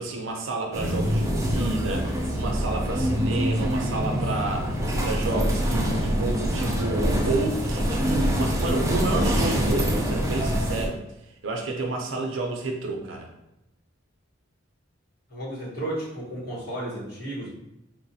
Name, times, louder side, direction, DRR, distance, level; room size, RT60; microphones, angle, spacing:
voice 1, 0.0-11.0 11.4-13.3, right 3 dB, 70° right, 2 dB, 0.5 m, -30 dB
sound 1, 0.7-10.9, equal, 15° right, 0.3 m, -25 dB
voice 2, 15.3-17.5, right 1 dB, 50° left, -7 dB, 1.3 m, -33 dB
3.1 x 2.1 x 2.7 m, 0.89 s
head